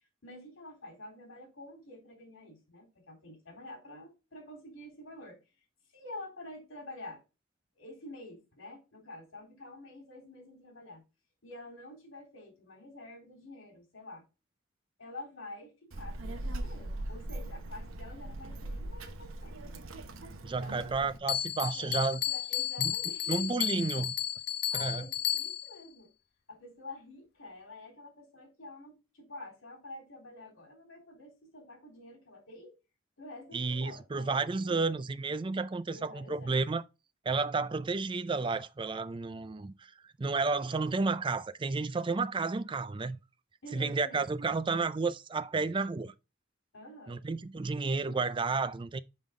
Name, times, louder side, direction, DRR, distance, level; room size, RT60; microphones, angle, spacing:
voice 1, 0.2-5.4 5.9-7.2 7.8-11.0 11.4-14.2 15.0-19.8 20.5-20.9 21.7-22.0 22.3-23.5 24.7-26.1 26.5-32.7 33.2-34.8 35.9-36.6 43.6-44.3 46.7-47.2, left 2 dB, 70° left, 3.5 m, -48 dB
Child speech kid speaking, 15.9-21.2, right 1 dB, 75° right, 0.9 m, -40 dB
voice 2, 20.4-22.2 22.8-22.9 23.3-24.1 24.7-25.0 33.5-36.8 37.3-39.9 40.2-43.2 43.7-46.1 47.1-49.0, right 4 dB, 25° right, 0.4 m, -31 dB
Bell, 21.3-25.8, left 10 dB, 50° left, 0.5 m, -33 dB
5.6 x 5.4 x 3.6 m
head